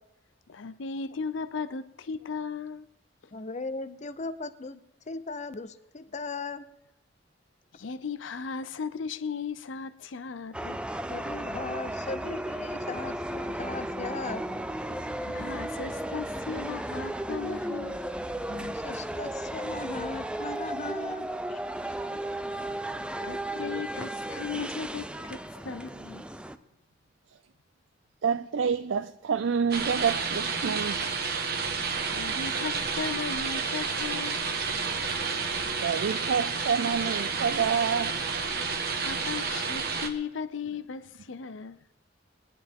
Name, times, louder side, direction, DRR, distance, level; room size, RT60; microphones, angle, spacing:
voice 1, 0.5-2.9 7.7-10.8 15.3-18.0 21.8-22.2 23.2-26.2 32.1-34.4 39.0-41.8, left 5 dB, 90° left, 0.6 m, -36 dB
voice 2, 3.3-6.7 11.1-14.4 18.5-21.9, left 3 dB, 40° left, 0.7 m, -38 dB
sound 1, 10.5-26.6, right 1 dB, 5° right, 0.5 m, -35 dB
voice 3, 28.2-31.1 35.8-38.2, right 6 dB, 80° right, 0.4 m, -28 dB
sound 2, 29.7-40.1, right 5 dB, 55° right, 1.3 m, -30 dB
21.0 x 11.0 x 3.6 m
head